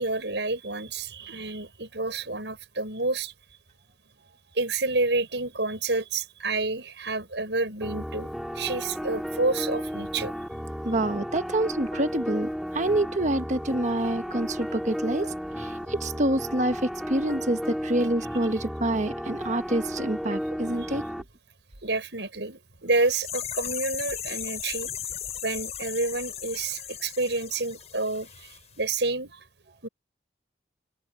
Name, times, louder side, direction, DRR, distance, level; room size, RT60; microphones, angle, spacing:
voice 1, 0.0-3.3 4.5-10.3 21.8-24.9 25.4-29.4 29.8-29.9, right 3 dB, 75° right, 6.1 m, -29 dB
sound 1, 7.8-21.2, equal, ahead, 2.7 m, -34 dB
voice 2, 10.8-21.0, right 1 dB, 40° right, 1.3 m, -27 dB
sound 2, 22.9-28.6 28.8-28.9, left 9 dB, 35° left, 6.5 m, -36 dB
open air
head